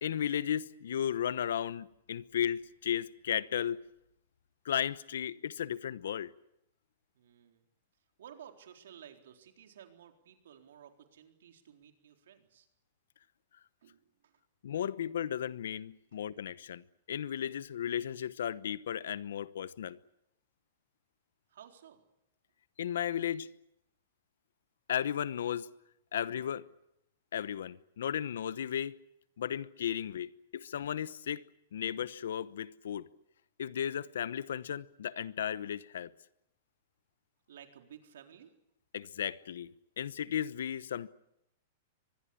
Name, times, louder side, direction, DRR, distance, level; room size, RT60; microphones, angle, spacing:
voice 1, 0.0-3.8 4.6-6.3 14.6-20.0 22.8-23.5 24.9-25.7 26.1-26.6 27.3-29.0 29.4-31.4 31.7-33.1 33.6-36.1 38.9-39.7 40.0-41.1, left 9 dB, 80° left, 1.0 m, -35 dB
voice 2, 7.1-7.7 8.2-12.7 13.8-14.4 21.5-22.0 37.5-38.5, right 9 dB, 80° right, 4.0 m, -54 dB
24.5 x 21.0 x 8.5 m
hypercardioid pair, 125°, 0 cm